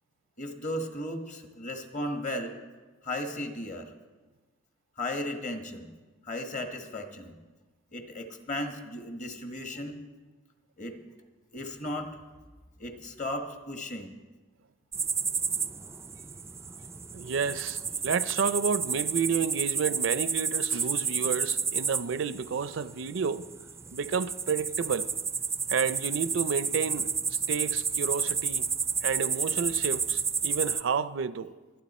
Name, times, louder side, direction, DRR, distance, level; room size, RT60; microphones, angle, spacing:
voice 1, 0.4-2.6 3.0-3.9 5.0-5.9 6.2-7.4 7.9-10.0 10.8-11.0 11.5-12.2 12.8-14.1, left 1 dB, 40° left, 1.5 m, -35 dB
sound 1, 14.9-30.8, right 6 dB, 15° right, 0.4 m, -31 dB
voice 2, 17.1-23.5 23.9-25.1 25.7-27.1 27.5-28.7 29.0-31.5, right 6 dB, 70° right, 0.5 m, -30 dB
25.0 x 9.6 x 4.2 m
head